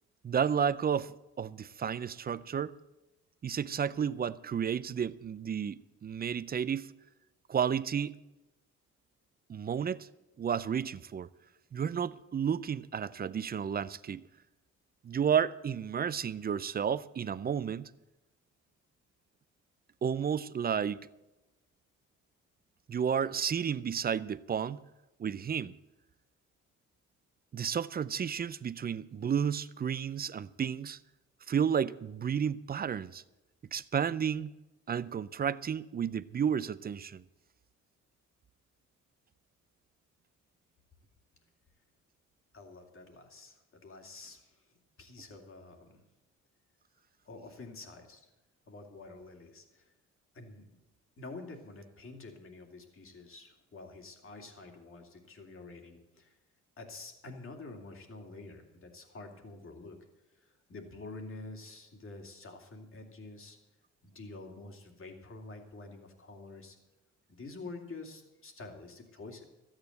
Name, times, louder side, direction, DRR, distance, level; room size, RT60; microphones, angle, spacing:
voice 1, 0.2-2.8 3.4-6.9 7.5-8.2 9.5-10.1 10.4-11.3 11.7-14.2 15.0-17.9 20.0-21.1 22.9-24.8 25.2-25.7 27.5-31.0 31.5-33.2 33.7-34.5 34.9-37.2, right 7 dB, 30° right, 0.5 m, -32 dB
voice 2, 42.5-46.0 47.2-48.3 48.7-49.9 50.3-50.6 51.2-56.4 56.8-60.0 60.3-63.6 64.0-66.8 67.3-69.5, left 3 dB, 45° left, 2.6 m, -48 dB
13.0 x 8.8 x 8.0 m
cardioid pair, 90°, 30 cm